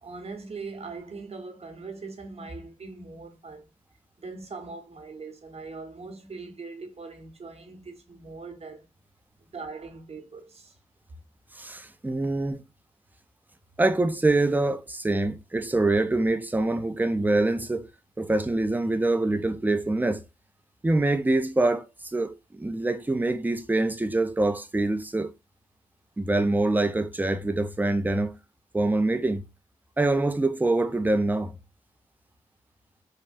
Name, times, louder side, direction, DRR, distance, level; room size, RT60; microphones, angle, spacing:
voice 1, 0.0-3.7 4.2-8.9 9.4-10.7, right 4 dB, 50° right, 0.9 m, -41 dB
voice 2, 11.5-12.6 13.8-17.9 18.2-20.2 20.8-25.3 26.2-28.3 28.7-29.4 30.0-31.5, right 2 dB, 15° right, 0.4 m, -25 dB
3.2 x 2.1 x 2.5 m
cardioid pair, 45°, 14 cm